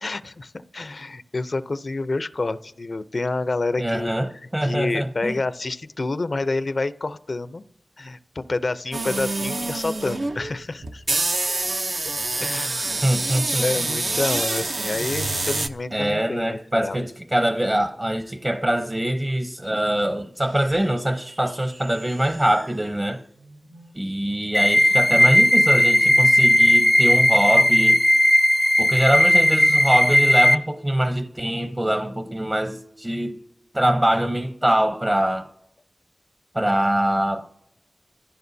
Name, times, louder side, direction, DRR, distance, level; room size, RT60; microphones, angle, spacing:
voice 1, 0.0-7.6 8.0-11.4 12.4-13.1 13.6-17.1, left 3 dB, 70° left, 0.6 m, -28 dB
voice 2, 3.8-5.3 13.0-14.2 15.9-23.2 23.9-28.0 28.8-33.4 33.7-35.5 36.5-37.5, right 1 dB, 25° right, 0.8 m, -23 dB
sound 1, 8.9-15.7, right 2 dB, 70° right, 0.8 m, -26 dB
sound 2, 20.3-25.0, right 2 dB, 85° right, 4.8 m, -49 dB
sound 3, 24.5-30.5, left 1 dB, 15° left, 0.5 m, -16 dB
28.0 x 15.5 x 2.7 m
wide cardioid pair, 45°, 0 cm